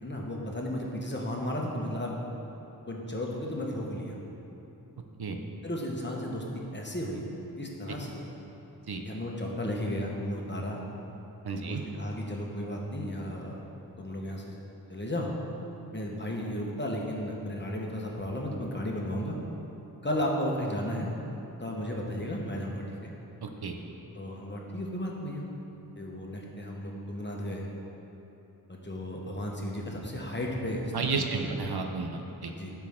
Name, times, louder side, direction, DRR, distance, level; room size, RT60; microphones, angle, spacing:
voice 1, 0.0-2.1 2.9-4.2 5.6-7.2 7.6-8.3 9.0-10.8 11.5-13.6 14.0-14.6 14.9-15.3 15.9-19.4 20.0-21.1 21.6-23.1 24.1-25.4 25.9-27.7 28.7-31.6 32.5-32.7, left 1 dB, 30° left, -1 dB, 1.2 m, -34 dB
voice 2, 11.4-11.8 23.4-23.8 30.9-32.5, right 4 dB, 75° right, 4 dB, 0.7 m, -32 dB
12.0 x 4.6 x 3.7 m, 3.0 s
wide cardioid pair, 55°, 38 cm